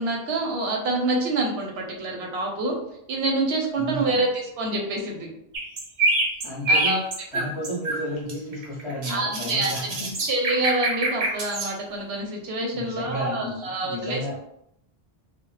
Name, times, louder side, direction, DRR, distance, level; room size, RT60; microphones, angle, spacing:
voice 1, 0.0-2.8 3.1-5.3 6.7-7.0 7.3-7.4 9.1-9.7 10.2-14.4, right 2 dB, 85° right, 1 dB, 0.8 m, -26 dB
voice 2, 3.8-4.2 6.4-7.0 7.3-10.1 12.7-14.3, equal, 35° left, -7 dB, 0.6 m, -32 dB
sound 1, 5.5-8.0 8.3-11.7, right 2 dB, 55° right, 0.6 m, -25 dB
2.1 x 2.0 x 3.0 m, 0.77 s
omnidirectional pair, 1.0 m